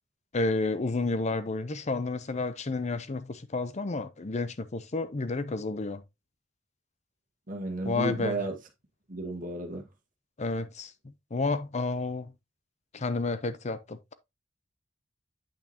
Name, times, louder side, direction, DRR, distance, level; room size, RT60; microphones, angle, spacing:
voice 1, 0.3-6.0 7.8-8.4 10.4-10.9 11.3-12.3 12.9-14.1, left 3 dB, 40° left, 0.7 m, -31 dB
voice 2, 7.5-8.5 9.1-9.8, right 2 dB, 45° right, 1.6 m, -33 dB
8.7 x 5.8 x 2.9 m
head